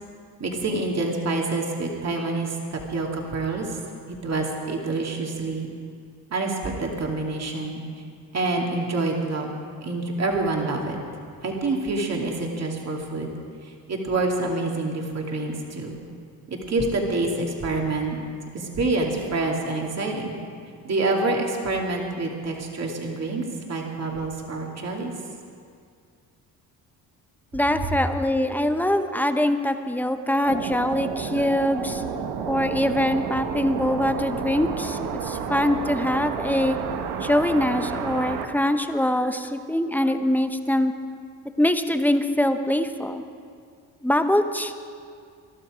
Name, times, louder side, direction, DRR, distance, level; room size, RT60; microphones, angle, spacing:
voice 1, 0.4-3.7 4.1-5.7 6.3-7.8 8.3-9.5 9.8-11.0 11.4-13.3 13.6-15.9 16.5-18.2 18.5-20.4 20.8-25.1, right 2 dB, 40° right, 0 dB, 2.7 m, -27 dB
voice 2, 27.5-32.0 32.5-36.8 37.2-40.9 41.6-43.2 44.0-44.7, left 1 dB, 5° left, 8 dB, 0.9 m, -23 dB
sound 1, 30.4-38.5, right 6 dB, 85° right, 1.3 m, -31 dB
21.5 x 12.5 x 5.0 m, 2.2 s
cardioid pair, 90°, 38 cm